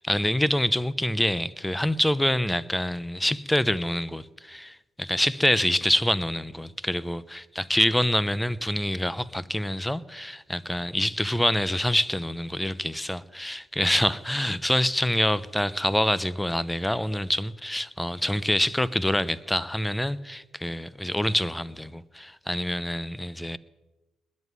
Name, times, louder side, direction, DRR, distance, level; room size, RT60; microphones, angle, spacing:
voice 1, 0.0-23.6, left 1 dB, 5° left, 0.8 m, -26 dB
20.0 x 7.5 x 9.5 m
hypercardioid pair, 60°, 0 cm